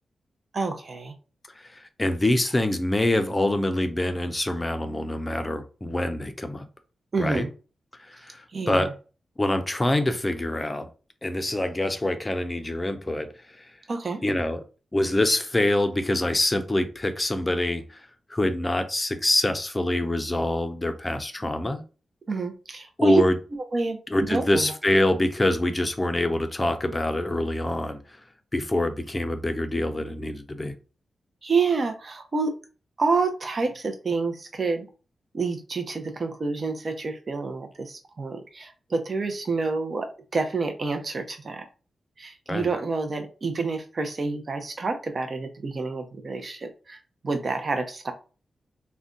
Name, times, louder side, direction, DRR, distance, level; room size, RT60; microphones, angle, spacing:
voice 1, 0.5-1.1 7.1-7.5 8.5-8.9 13.9-14.2 22.3-23.2 23.7-24.0 24.3-24.7 31.4-32.5 33.0-34.9 35.3-41.7 42.2-48.1, right 3 dB, 45° right, 5 dB, 0.7 m, -28 dB
voice 2, 1.6-6.6 7.2-7.4 8.0-8.9 9.4-10.9 11.2-13.7 14.2-14.6 14.9-21.8 23.0-23.4 24.1-28.0 28.5-30.7 42.5-42.7, left 1 dB, 20° left, 8 dB, 0.5 m, -25 dB
2.5 x 2.2 x 3.7 m, 0.34 s
cardioid pair, 95°, 0 cm